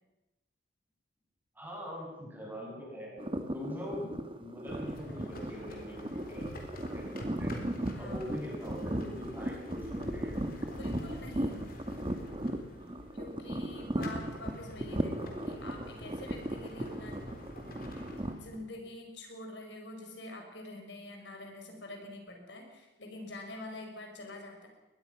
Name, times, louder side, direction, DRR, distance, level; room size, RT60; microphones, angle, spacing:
voice 1, 1.5-6.5 6.9-7.5 8.0-10.4, equal, 10° right, -3 dB, 6.8 m, -43 dB
sound 1, 3.2-18.3, right 1 dB, 25° right, 1.5 m, -37 dB
sound 2, 4.7-18.6, equal, 50° left, 3.8 m, -47 dB
voice 2, 7.9-8.3 10.7-11.6 13.1-17.2 18.4-24.7, left 2 dB, 70° left, 2 dB, 5.1 m, -46 dB
22.5 x 20.0 x 6.0 m, 0.99 s
head